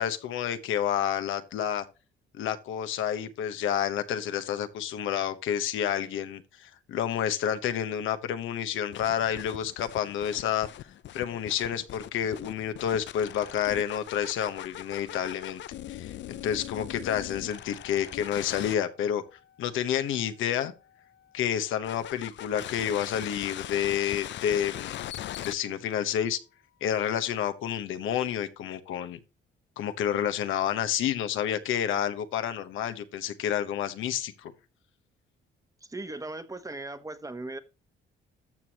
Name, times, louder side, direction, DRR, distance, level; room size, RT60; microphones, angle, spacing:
voice 1, 0.0-1.8 2.3-10.9 11.1-15.6 15.9-16.2 16.4-19.2 19.6-20.7 21.3-25.0 25.4-26.4 26.8-29.2 29.8-34.5, left 9 dB, 85° left, 1.2 m, -29 dB
sound 1, 8.9-18.7 21.8-25.5, left 12 dB, 65° left, 0.5 m, -41 dB
voice 2, 35.8-37.6, right 2 dB, 15° right, 1.1 m, -38 dB
13.5 x 6.2 x 3.0 m
cardioid pair, 90°, 20 cm